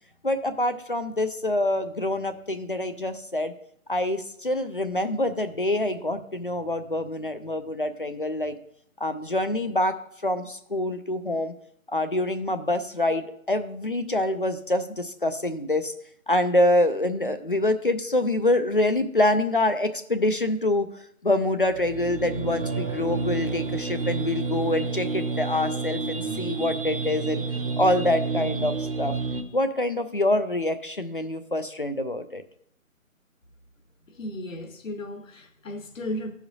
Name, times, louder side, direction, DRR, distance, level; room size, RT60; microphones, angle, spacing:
voice 1, 0.2-3.5 3.9-8.5 9.0-10.0 10.2-11.5 11.9-15.9 16.3-20.9 21.2-27.4 27.8-29.1 29.5-32.4, left 1 dB, 40° left, 0.4 m, -25 dB
sound 1, 21.6-29.4, right 4 dB, 45° right, 0.9 m, -30 dB
voice 2, 34.2-36.3, left 1 dB, 65° left, 1.2 m, -35 dB
14.5 x 5.0 x 2.6 m
figure-of-eight pair, 160°, 42 cm